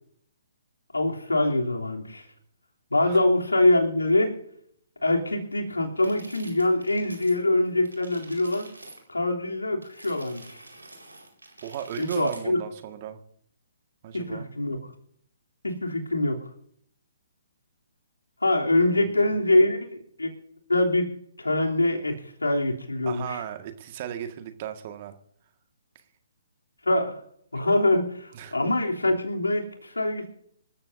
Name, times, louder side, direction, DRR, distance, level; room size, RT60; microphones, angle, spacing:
voice 1, 0.9-2.2 2.9-4.3 5.0-8.7 9.1-10.6 12.0-12.6 14.1-14.8 15.6-16.4 18.4-20.3 20.7-21.1 21.4-22.1 22.4-23.4 26.8-27.1 27.5-30.3, left 1 dB, 85° left, 1 dB, 3.2 m, -24 dB
sound 1, 6.0-7.4 7.7-9.0 9.8-12.5, right 2 dB, 90° right, 4.6 m, -47 dB
voice 2, 11.6-13.2 14.0-14.5 18.9-19.1 23.0-25.1 28.3-28.6, right 10 dB, 40° right, 7 dB, 1.8 m, -36 dB
26.5 x 13.5 x 2.7 m, 0.68 s
figure-of-eight pair, 130°, 0 cm